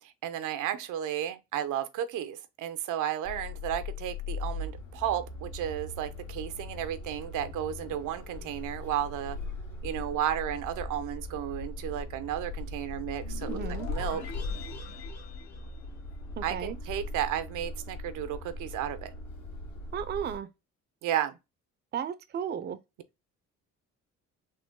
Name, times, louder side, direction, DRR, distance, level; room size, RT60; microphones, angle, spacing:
voice 1, 0.0-9.4 9.8-13.6 13.9-14.2 16.4-19.1 21.0-21.4, right 11 dB, 85° right, 0.6 m, -33 dB
sound 1, 3.2-20.4, left 2 dB, 85° left, 1.8 m, -39 dB
sound 2, 13.2-16.5, left 6 dB, 65° left, 1.2 m, -44 dB
voice 2, 13.5-13.9 16.4-16.8 19.9-20.5 21.9-22.8, right 8 dB, 35° right, 0.4 m, -34 dB
3.9 x 2.2 x 3.6 m
cardioid pair, 90°, 30 cm